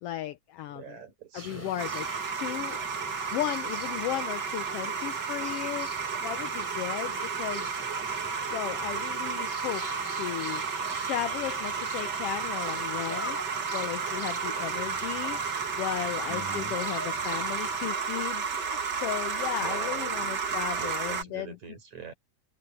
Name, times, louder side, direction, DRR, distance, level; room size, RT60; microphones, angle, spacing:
voice 1, 0.0-1.0 1.3-2.1 2.4-2.8 3.3-5.9 6.2-7.8 8.5-10.6 11.0-13.4 13.7-15.4 15.8-21.6, left 13 dB, 75° left, 1.4 m, -35 dB
voice 2, 0.7-1.7 8.8-9.0 16.3-16.7 19.6-22.1, right 5 dB, 70° right, 6.4 m, -43 dB
sound 1, 1.4-17.9, equal, 5° left, 3.3 m, -44 dB
sound 2, 1.8-21.2, right 5 dB, 45° right, 1.8 m, -32 dB
omnidirectional pair, 3.3 m